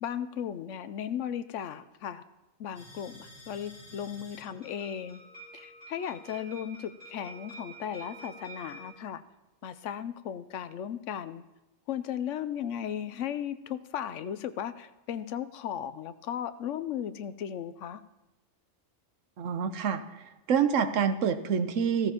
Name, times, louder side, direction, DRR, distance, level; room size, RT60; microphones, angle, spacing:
voice 1, 0.0-2.2 2.6-5.2 5.5-9.2 9.6-11.4 11.9-18.0, left 9 dB, 75° left, 13 dB, 0.9 m, -36 dB
sound 1, 2.7-8.9, right 2 dB, 40° right, 5.3 m, -49 dB
voice 2, 19.4-20.0 20.5-22.1, right 7 dB, 75° right, 10 dB, 1.1 m, -26 dB
15.5 x 14.0 x 2.9 m, 1.1 s
omnidirectional pair, 1.3 m